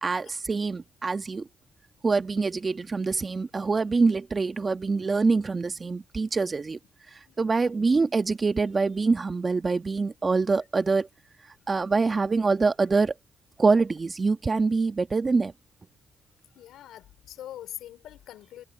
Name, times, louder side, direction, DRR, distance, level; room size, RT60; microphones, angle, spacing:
voice 1, 0.0-1.5 2.0-6.8 7.1-11.1 11.7-13.1 13.6-15.5, right 4 dB, 30° right, 1.6 m, -25 dB
voice 2, 7.3-7.7 16.5-18.7, left 12 dB, 80° left, 4.1 m, -43 dB
cardioid pair, 90°, 0 cm